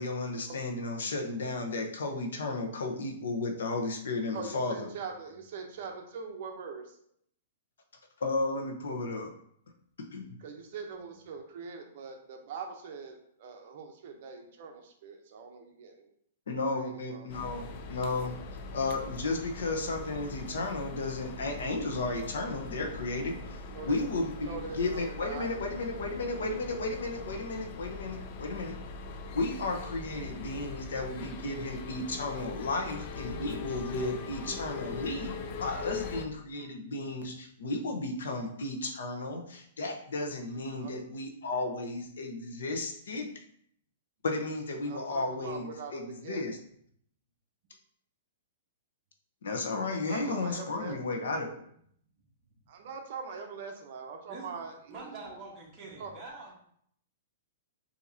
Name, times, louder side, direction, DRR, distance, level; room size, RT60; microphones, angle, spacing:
voice 1, 0.0-4.8 8.2-9.3 10.1-10.4 16.5-18.4 18.7-28.8 29.3-43.3 44.2-46.6 49.4-51.5, left 2 dB, 90° left, 3 dB, 1.0 m, -34 dB
voice 2, 4.3-7.0 10.4-16.1 16.7-17.3 23.7-24.0 24.3-25.5 40.8-40.9 44.9-46.6 50.1-51.2 52.7-55.3 56.0-56.1, right 5 dB, 45° right, 3 dB, 0.7 m, -42 dB
sound 1, 17.3-36.3, left 4 dB, 30° left, 0.4 m, -41 dB
voice 3, 54.9-56.5, right 3 dB, 20° right, -4 dB, 1.2 m, -45 dB
6.9 x 2.8 x 2.7 m, 0.66 s
hypercardioid pair, 170°, 0 cm